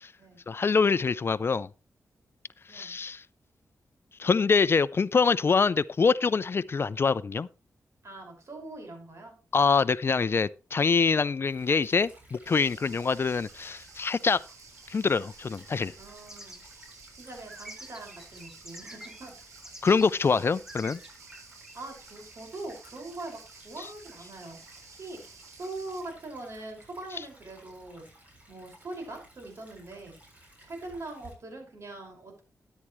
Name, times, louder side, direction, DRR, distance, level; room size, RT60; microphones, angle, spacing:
voice 1, 0.5-1.7 2.7-3.2 4.2-7.5 9.5-14.4 14.9-15.9 19.8-21.0 23.8-23.9, left 5 dB, 45° left, 0.5 m, -25 dB
voice 2, 8.0-9.3 10.9-11.1 12.7-12.9 16.0-16.6 17.2-19.3 21.7-24.6 24.9-28.0 28.5-30.2 30.6-32.4, right 2 dB, 60° right, 5.6 m, -42 dB
Stream / Trickle dribble, 11.5-31.3, right 1 dB, 30° right, 7.2 m, -56 dB
sound 1, 12.5-26.0, right 4 dB, 90° right, 3.5 m, -52 dB
sound 2, 16.3-19.3 19.6-20.1 20.3-21.8, equal, 10° right, 2.5 m, -47 dB
13.5 x 10.0 x 3.1 m
cardioid pair, 70°, 5 cm